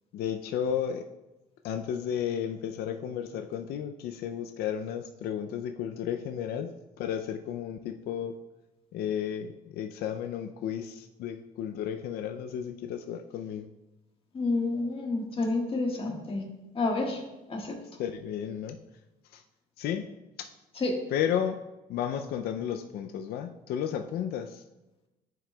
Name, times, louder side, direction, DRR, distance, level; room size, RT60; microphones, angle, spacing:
voice 1, 0.1-1.1 1.6-6.7 7.0-8.4 8.9-13.7 18.0-18.8 19.3-19.4 19.8-20.1 20.4-20.5 21.1-21.6 21.9-24.6, left 9 dB, 70° left, 6 dB, 0.4 m, -33 dB
voice 2, 14.3-16.4 16.7-17.2 17.5-17.8 20.8-20.9, left 3 dB, 35° left, 0 dB, 1.5 m, -29 dB
10.5 x 4.9 x 2.3 m, 1.0 s
cardioid pair, 110°, 17 cm